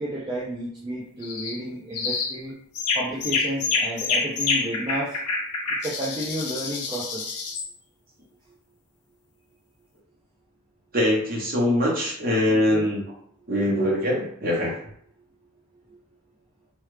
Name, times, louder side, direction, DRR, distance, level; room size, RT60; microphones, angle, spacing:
voice 1, 0.0-2.6 2.9-5.2 5.8-7.4 12.5-12.9 15.9-16.0, right 1 dB, 20° right, -6 dB, 0.4 m, -32 dB
sound 1, 1.2-1.6 1.9-2.4 2.7-7.7, left 4 dB, 85° left, 0.7 m, -27 dB
voice 2, 10.9-13.0 13.5-14.8, left 1 dB, 40° right, -4 dB, 1.0 m, -23 dB
3.1 x 2.4 x 3.2 m, 0.67 s
head